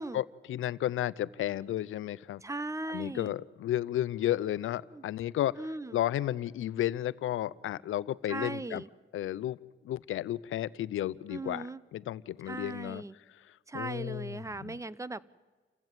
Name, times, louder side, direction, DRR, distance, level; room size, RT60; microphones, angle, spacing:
voice 1, 0.0-2.4 2.9-5.6 5.9-8.8 9.1-9.6 9.8-13.0 13.3-14.7, left 13 dB, 75° left, 17 dB, 0.6 m, -33 dB
voice 2, 2.4-3.3 4.9-5.0 5.6-5.9 8.3-8.9 11.3-11.8 12.5-13.2 13.7-15.2, right 2 dB, 15° right, 18 dB, 0.8 m, -38 dB
28.5 x 15.5 x 7.5 m, 1.4 s
cardioid pair, 80°, 21 cm